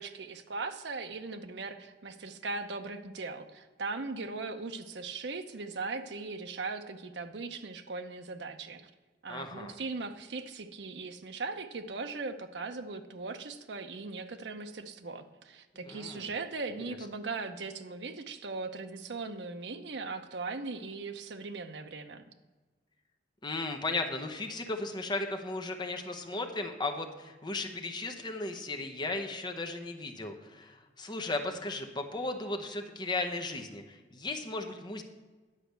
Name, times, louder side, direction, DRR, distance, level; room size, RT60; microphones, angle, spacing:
voice 1, 0.0-8.9 9.2-22.2, right 3 dB, 75° right, 8 dB, 0.7 m, -39 dB
voice 2, 9.3-9.7 15.7-16.3 16.9-17.0 23.4-35.0, left 2 dB, 25° left, 5 dB, 0.9 m, -36 dB
9.9 x 5.0 x 8.0 m, 1.3 s
head